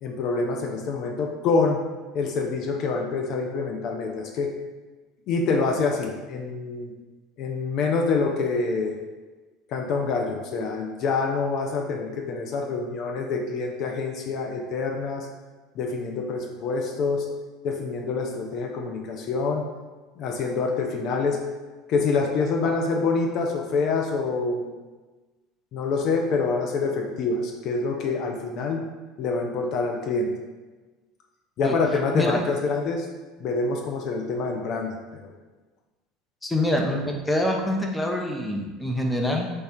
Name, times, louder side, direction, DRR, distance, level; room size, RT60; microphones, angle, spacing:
voice 1, 0.0-1.8 2.1-4.5 5.3-6.9 7.4-8.9 9.7-15.3 15.8-17.3 17.6-19.7 20.2-21.4 21.9-24.7 25.7-28.8 29.2-30.3 31.6-33.1 33.4-34.9 35.2-35.3, left 4 dB, 55° left, 2 dB, 0.6 m, -26 dB
voice 2, 36.4-39.5, left 1 dB, 10° left, 1 dB, 0.7 m, -25 dB
3.4 x 3.3 x 4.3 m, 1.3 s
hypercardioid pair, 75°, 0 cm